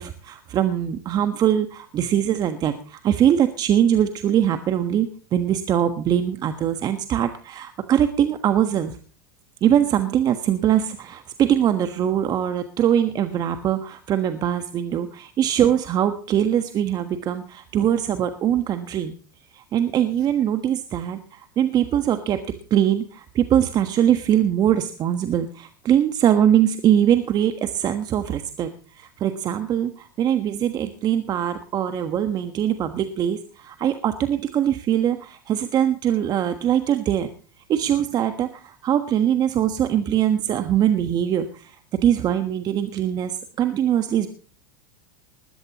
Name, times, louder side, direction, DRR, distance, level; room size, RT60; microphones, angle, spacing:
voice 1, 0.0-9.0 9.6-19.1 19.5-22.4 22.7-37.3 37.7-44.3, right 10 dB, 35° right, 8 dB, 1.4 m, -22 dB
20.5 x 12.5 x 3.0 m, 0.40 s
hypercardioid pair, 95°, 11 cm